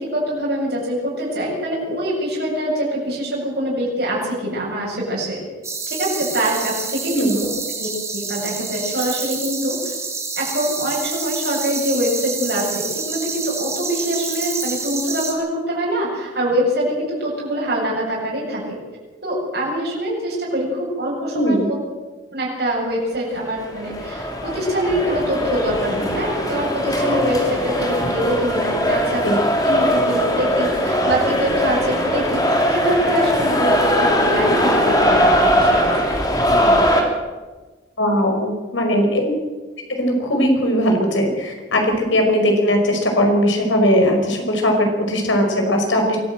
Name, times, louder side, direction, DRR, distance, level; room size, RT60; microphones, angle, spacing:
voice 1, 0.0-5.4 5.9-7.5 7.8-9.9 10.4-18.8 19.2-21.8 22.3-29.3 29.6-36.2 36.5-37.0 41.9-42.0, equal, 55° right, -4 dB, 7.7 m, -24 dB
sound 1, 5.6-15.3, right 4 dB, 15° right, 3.7 m, -28 dB
voice 2, 21.3-21.7 29.2-29.4 35.3-35.4 38.0-39.2 39.9-46.2, equal, 85° left, 3 dB, 5.5 m, -19 dB
sound 2, 23.4-37.0, equal, 20° left, 3.0 m, -20 dB
23.5 x 15.0 x 8.0 m, 1.3 s
head